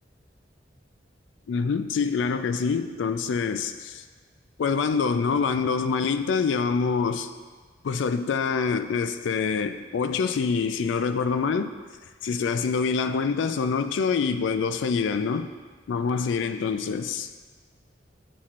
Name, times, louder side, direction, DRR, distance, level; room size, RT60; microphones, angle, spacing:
voice 1, 1.5-4.0 4.6-7.3 7.8-11.7 12.2-15.5 15.9-17.3, left 5 dB, 85° left, 0.4 m, -25 dB
9.3 x 4.2 x 2.5 m
head